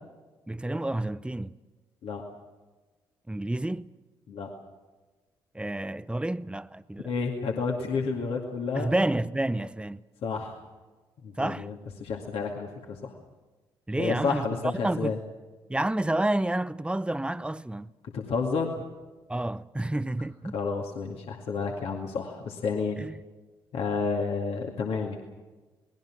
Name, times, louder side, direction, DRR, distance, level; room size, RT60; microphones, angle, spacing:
voice 1, 0.5-1.5 3.3-3.9 5.5-7.1 8.7-10.0 11.4-11.7 13.9-14.5 14.8-15.2 15.7-17.9 19.3-20.6 23.0-23.2, right 1 dB, 10° right, 0.8 m, -29 dB
voice 2, 7.0-8.9 10.2-10.6 11.2-11.7 12.0-13.1 14.0-15.2 18.1-18.7 20.5-23.0 23.7-25.2, left 5 dB, 60° left, 2.3 m, -30 dB
28.5 x 19.5 x 6.1 m
hypercardioid pair, 45°, 11 cm